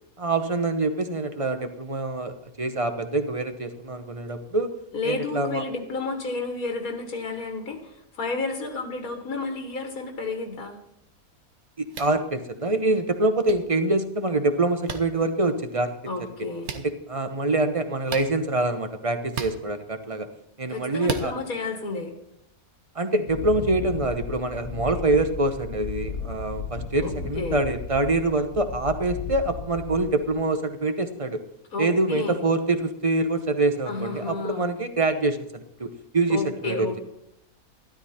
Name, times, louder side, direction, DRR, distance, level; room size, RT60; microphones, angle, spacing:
voice 1, 0.2-4.7 5.0-5.6 11.8-15.9 16.8-20.3 20.6-21.3 22.9-31.4 31.8-36.9, right 2 dB, 30° right, 8 dB, 0.8 m, -25 dB
voice 2, 4.9-10.8 16.1-16.8 20.7-22.1 27.0-27.6 31.7-32.4 33.9-34.7 36.3-37.0, left 3 dB, 80° left, 4 dB, 2.0 m, -31 dB
sound 1, 11.9-12.2 13.4-13.5 14.9-15.0 16.6-16.8 18.1-18.3 19.3-19.5 21.0-21.3, right 7 dB, 90° right, 1.5 m, -31 dB
Wind, 23.2-30.4, left 5 dB, 55° left, 1.5 m, -35 dB
13.0 x 12.5 x 4.3 m, 0.82 s
omnidirectional pair, 1.5 m